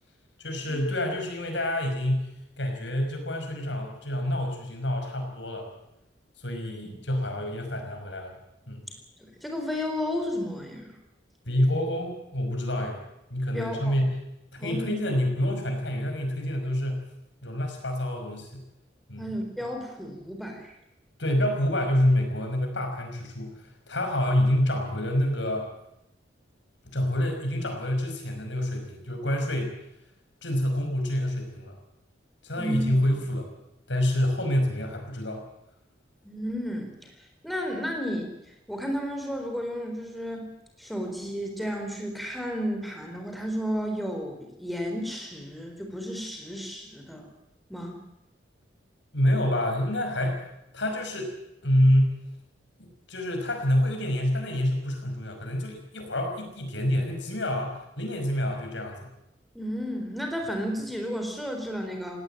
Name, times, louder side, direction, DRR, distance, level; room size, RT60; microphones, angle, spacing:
voice 1, 0.4-5.7 6.4-8.3 8.7-8.8 11.5-13.0 13.3-14.2 14.5-17.0 17.4-18.6 19.1-19.3 21.2-25.7 26.9-29.7 30.4-31.8 32.4-33.5 33.9-35.4 49.1-50.4 50.7-51.3 51.6-52.2 52.8-59.1, left 1 dB, 70° left, 3 dB, 5.8 m, -27 dB
voice 2, 9.2-11.0 13.5-14.0 14.6-15.0 19.2-20.7 32.6-32.9 36.2-36.9 37.4-38.3 38.7-40.5 40.8-47.3 47.7-48.0 59.5-62.2, equal, ahead, 3 dB, 4.0 m, -32 dB
18.0 x 18.0 x 9.0 m, 0.87 s
head